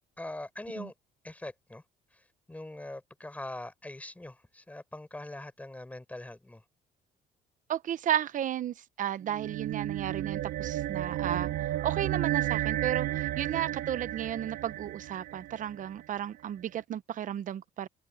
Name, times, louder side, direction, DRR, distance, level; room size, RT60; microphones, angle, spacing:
voice 1, 0.2-0.9 1.2-1.8 2.1-6.6, left 1 dB, 10° left, 4.6 m, -42 dB
voice 2, 7.7-17.9, right 10 dB, 50° right, 0.9 m, -33 dB
sound 1, 9.2-15.9, right 14 dB, 80° right, 1.7 m, -33 dB
cardioid pair, 110°, 17 cm